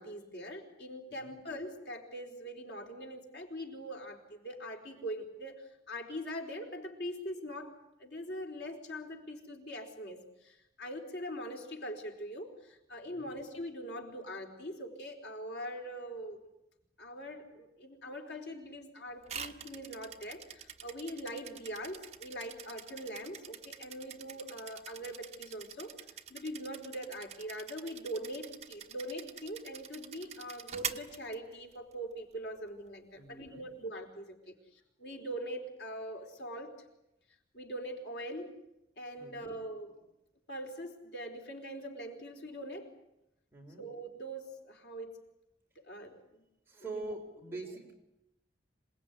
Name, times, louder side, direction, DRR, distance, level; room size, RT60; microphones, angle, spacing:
voice 1, 0.0-16.4 17.0-25.9 26.3-36.8 37.5-38.6 39.0-40.0 40.5-43.0 43.8-45.2 45.8-46.4 46.8-47.1, equal, 80° left, 2 dB, 4.3 m, -42 dB
voice 2, 13.0-13.3 33.1-33.7 39.2-39.5 43.5-43.9 46.7-47.9, right 2 dB, 15° right, 0 dB, 5.0 m, -44 dB
sound 1, 19.3-31.9, right 8 dB, 40° right, 1.3 m, -46 dB
27.0 x 19.5 x 9.7 m, 0.87 s
head